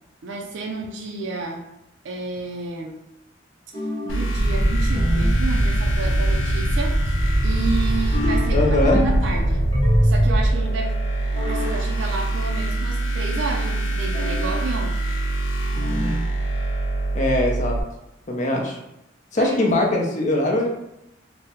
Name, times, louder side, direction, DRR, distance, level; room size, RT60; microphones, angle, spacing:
voice 1, 0.2-1.6 2.0-3.0 4.0-9.7 10.0-11.0 11.5-14.9 19.4-19.7, right 3 dB, 70° right, 1 dB, 0.4 m, -31 dB
sound 1, 3.7-4.3 4.9-5.5 8.1-9.3 9.7-10.4 11.3-11.8 14.1-14.6 15.7-16.2, equal, 25° left, 0.9 m, -25 dB
sound 2, 4.1-17.8, right 2 dB, 90° left, 0.5 m, -25 dB
sound 3, 4.3-10.5, equal, 25° right, 0.6 m, -22 dB
voice 2, 8.5-9.0 17.1-17.8 18.3-18.8 19.3-20.7, left 1 dB, 40° left, 0 dB, 0.6 m, -21 dB
3.4 x 2.1 x 2.9 m, 0.87 s
head